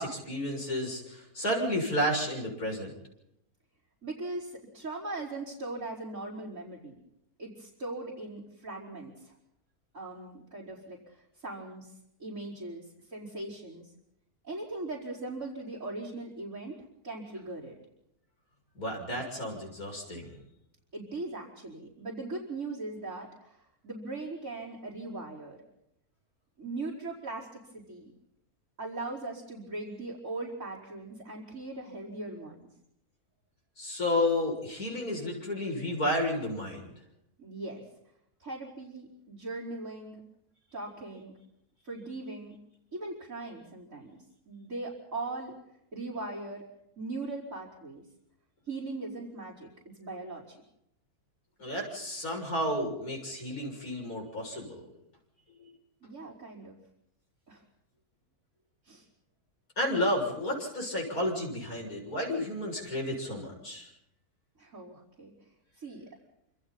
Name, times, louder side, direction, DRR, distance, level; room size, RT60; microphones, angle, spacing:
voice 1, 0.0-2.9 18.8-20.3 33.8-36.9 51.6-54.8 55.6-55.7 59.8-63.9, left 1 dB, 75° left, 1 dB, 7.5 m, -31 dB
voice 2, 4.0-7.0 7.4-9.3 9.9-11.9 12.2-13.9 14.4-17.8 20.9-25.6 26.6-28.1 28.8-32.7 37.4-37.8 38.4-40.2 40.7-41.3 41.8-42.6 42.9-44.2 44.5-45.5 45.9-46.6 47.0-48.0 48.7-49.7 50.0-50.6 56.0-56.8 57.5-57.6 58.9-59.1 64.6-65.3 65.8-66.1, right 2 dB, 60° right, -7 dB, 5.3 m, -39 dB
28.5 x 27.0 x 4.3 m, 0.80 s
omnidirectional pair, 1.6 m